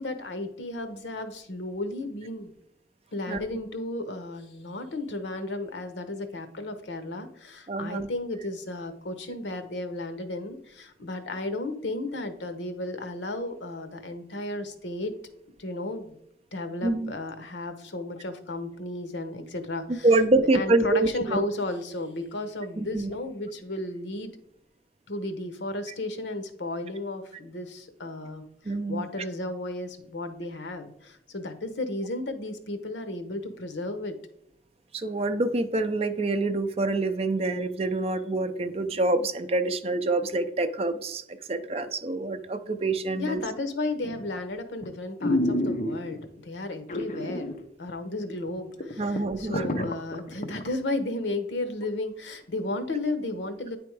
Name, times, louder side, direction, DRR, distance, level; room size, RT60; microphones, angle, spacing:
voice 1, 0.0-2.5 3.1-15.2 15.6-16.2 16.5-20.1 20.3-24.3 25.1-28.4 28.9-34.2 43.1-47.5 47.8-53.8, left 2 dB, 85° left, 9 dB, 0.9 m, -34 dB
voice 2, 7.7-8.1 16.8-17.1 20.0-21.4 22.8-23.1 28.7-29.0 34.9-41.2 41.5-43.4 49.0-49.6, right 2 dB, 35° right, 9 dB, 0.5 m, -26 dB
sound 1, 44.0-44.4 44.8-44.9 45.2-46.3 46.9-47.6 47.9-48.0 48.5-48.6 48.8-50.7 51.1-51.2, left 1 dB, 45° left, 0.7 m, -28 dB
9.4 x 3.5 x 4.6 m, 0.76 s
head